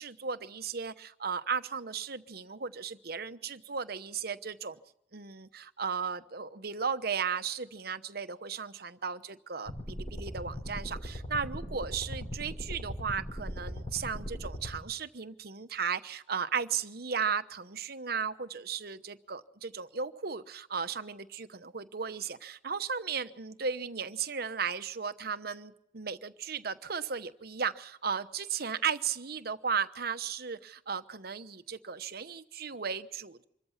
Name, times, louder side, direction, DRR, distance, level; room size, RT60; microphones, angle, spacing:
voice 1, 0.0-4.8 5.1-33.4, right 6 dB, 55° right, 11 dB, 1.0 m, -35 dB
sound 1, 9.7-14.8, equal, 35° left, 5.2 m, -39 dB
26.0 x 14.0 x 7.2 m, 0.78 s
head